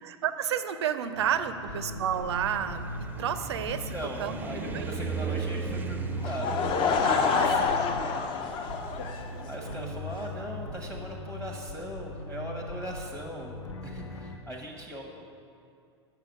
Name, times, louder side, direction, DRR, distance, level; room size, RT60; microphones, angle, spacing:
voice 1, 0.0-2.9 3.2-3.9 4.2-4.9 7.0-7.5, right 9 dB, 70° right, 11 dB, 0.4 m, -31 dB
sound 1, 1.1-14.4, equal, 85° left, 0.6 m, -40 dB
sound 2, 2.1-9.3, right 5 dB, 10° right, 0.4 m, -37 dB
voice 2, 3.9-7.8 8.9-13.6 13.8-15.0, equal, 5° left, 0 dB, 0.8 m, -40 dB
Laughter / Crowd, 6.2-9.7, left 5 dB, 35° left, 0.5 m, -27 dB
7.5 x 5.8 x 5.1 m, 2.4 s
figure-of-eight pair, 90°, 15 cm